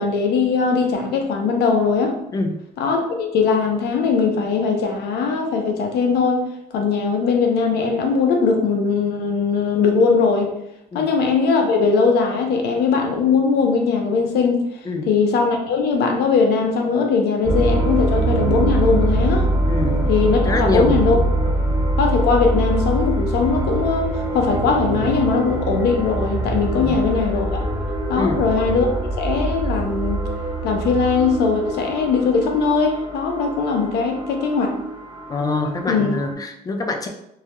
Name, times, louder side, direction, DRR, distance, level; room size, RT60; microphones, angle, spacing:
voice 1, 0.0-2.2 2.8-6.4 6.7-10.5 10.9-14.6 15.1-19.5 20.1-21.2 22.0-27.5 28.1-28.9 29.2-30.2 30.6-34.7 35.9-36.2, left 5 dB, 75° left, 2 dB, 0.6 m, -20 dB
sound 1, 17.4-36.3, right 1 dB, 10° right, 0.7 m, -23 dB
voice 2, 19.7-20.0 20.4-20.9 26.8-27.0 28.2-28.4 35.3-37.1, left 3 dB, 20° left, 3 dB, 0.4 m, -24 dB
2.3 x 2.1 x 2.8 m, 0.81 s
cardioid pair, 110°, 17 cm